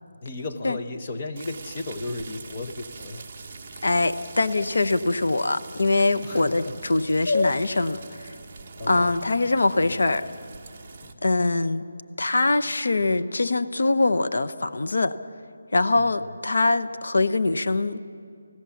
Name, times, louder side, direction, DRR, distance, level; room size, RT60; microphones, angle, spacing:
voice 1, 0.2-3.3 6.2-6.7 7.3-7.6 8.7-9.1 9.8-10.0 11.0-11.1 16.0-16.1, left 3 dB, 20° left, 4 dB, 0.9 m, -31 dB
sound 1, 1.4-11.1, right 4 dB, 20° right, 0.9 m, -43 dB
voice 2, 3.8-8.4 8.9-10.2 11.2-11.8 12.2-15.2 15.7-18.1, left 2 dB, 65° left, 10 dB, 0.8 m, -23 dB
29.5 x 16.0 x 7.1 m, 2.3 s
figure-of-eight pair, 180°, 0 cm